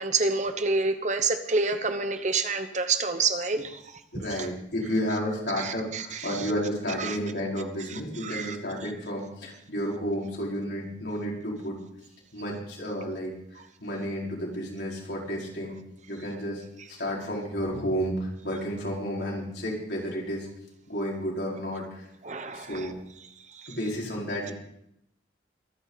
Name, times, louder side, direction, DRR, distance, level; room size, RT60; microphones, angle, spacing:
voice 1, 0.0-3.8 5.6-6.4 7.0-7.2 7.9-8.6 22.2-22.9 23.5-23.8, right 4 dB, 40° right, 9 dB, 1.0 m, -28 dB
voice 2, 4.1-11.8 12.3-15.8 16.1-16.6 16.9-20.5 20.9-22.1 22.5-22.9 23.7-24.5, equal, 70° left, -3 dB, 4.9 m, -31 dB
24.0 x 9.8 x 4.1 m, 0.76 s
head